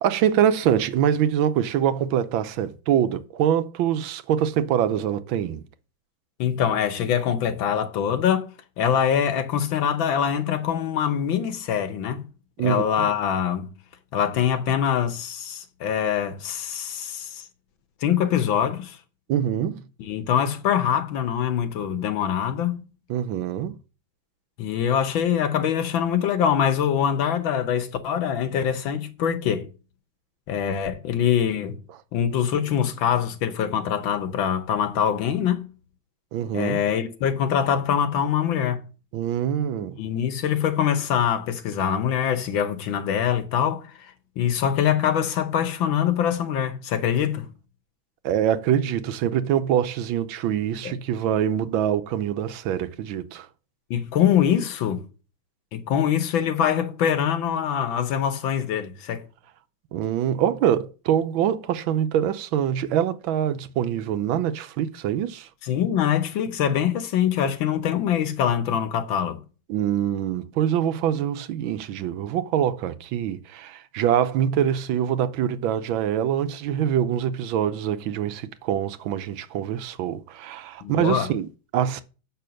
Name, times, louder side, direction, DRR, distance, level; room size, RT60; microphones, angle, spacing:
voice 1, 0.0-5.6 12.6-13.1 19.3-19.9 23.1-23.8 36.3-36.8 39.1-40.0 48.2-53.5 59.9-65.5 69.7-82.0, right 10 dB, 80° right, 1.5 m, -24 dB
voice 2, 6.4-12.3 12.6-13.7 14.1-17.5 18.0-19.0 20.0-22.8 24.6-29.7 30.5-31.8 32.1-35.7 36.5-38.8 39.8-47.5 50.8-51.0 53.9-55.1 55.7-59.2 65.6-69.4 80.8-81.3, left 9 dB, 75° left, 1.8 m, -24 dB
6.8 x 5.9 x 6.3 m
omnidirectional pair, 2.2 m